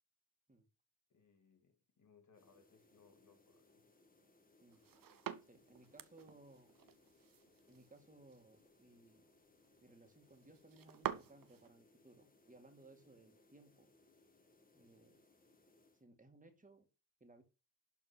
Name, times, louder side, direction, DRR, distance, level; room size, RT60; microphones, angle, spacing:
voice 1, 1.1-3.9, left 5 dB, 55° left, 2.0 m, -69 dB
sound 1, 2.3-16.1, left 2 dB, 25° left, 1.7 m, -70 dB
sound 2, 4.7-11.7, right 10 dB, 75° right, 0.9 m, -49 dB
voice 2, 5.4-6.7 7.7-9.3 9.8-13.9 14.7-15.2 15.9-16.9 17.2-17.4, right 2 dB, 25° right, 2.2 m, -62 dB
11.5 x 4.3 x 5.7 m
wide cardioid pair, 110°, 34 cm